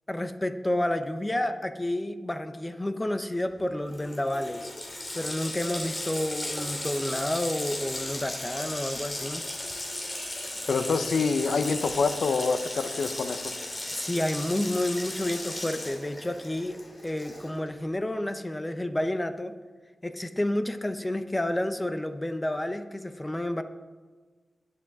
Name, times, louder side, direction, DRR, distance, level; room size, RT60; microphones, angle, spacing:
voice 1, 0.1-4.7 5.1-9.4 14.0-19.5 20.0-23.6, left 1 dB, 15° left, 9 dB, 0.7 m, -30 dB
Water tap faucet, 3.6-3.7 3.9-17.7, left 1 dB, 30° left, 2.7 m, -36 dB
voice 2, 10.7-13.4, left 4 dB, 75° left, 9 dB, 0.8 m, -26 dB
20.0 x 7.6 x 3.6 m, 1.4 s
wide cardioid pair, 105°, 0 cm